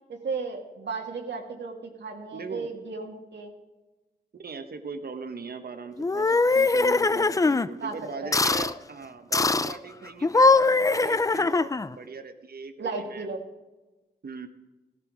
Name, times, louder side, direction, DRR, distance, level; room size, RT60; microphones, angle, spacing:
voice 1, 0.1-3.5 7.8-7.9 8.2-8.3 12.8-13.4, right 4 dB, 80° right, 2 dB, 1.9 m, -34 dB
voice 2, 2.3-2.7 4.3-13.3 14.2-14.5, right 4 dB, 60° right, 8 dB, 1.2 m, -39 dB
sound 1, 6.0-7.7 8.3-8.7 9.3-9.8 10.2-11.9, left 3 dB, 20° left, 0.4 m, -21 dB
16.0 x 12.0 x 4.9 m, 1.1 s
wide cardioid pair, 115°, 18 cm